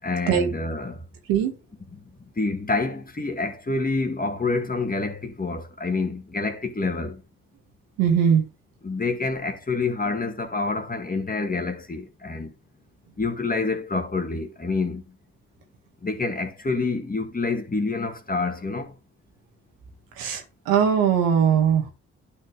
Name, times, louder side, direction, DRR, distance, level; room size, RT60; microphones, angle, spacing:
voice 1, 0.0-1.0 2.4-7.2 8.8-12.5 13.2-15.0 16.0-18.9, left 3 dB, 25° left, 1.9 m, -27 dB
voice 2, 8.0-8.4 20.2-21.9, right 8 dB, 80° right, 1.8 m, -20 dB
11.5 x 4.3 x 3.3 m
hypercardioid pair, 45°, 34 cm